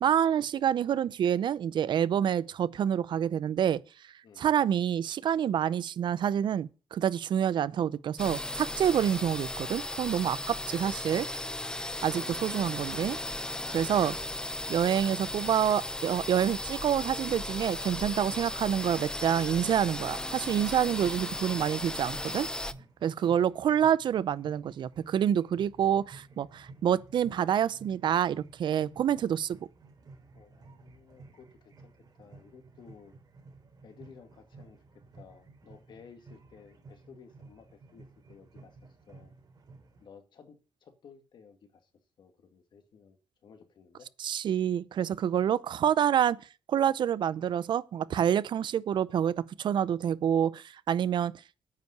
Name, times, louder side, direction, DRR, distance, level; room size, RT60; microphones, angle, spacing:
voice 1, 0.0-3.8 4.4-11.3 12.0-13.2 13.7-14.1 14.7-22.5 23.0-29.6 44.2-46.4 46.7-51.3, right 9 dB, 65° right, 0.6 m, -27 dB
sound 1, 8.2-22.7, left 1 dB, 10° left, 0.6 m, -36 dB
sound 2, 12.8-21.2, left 3 dB, 25° left, 1.5 m, -54 dB
sound 3, 21.0-40.1, right 3 dB, 45° right, 4.3 m, -54 dB
voice 2, 30.3-33.2 33.8-38.8 39.1-39.3 40.0-41.9 42.2-44.1, left 6 dB, 60° left, 1.9 m, -55 dB
9.2 x 5.4 x 8.0 m
cardioid pair, 105°, 9 cm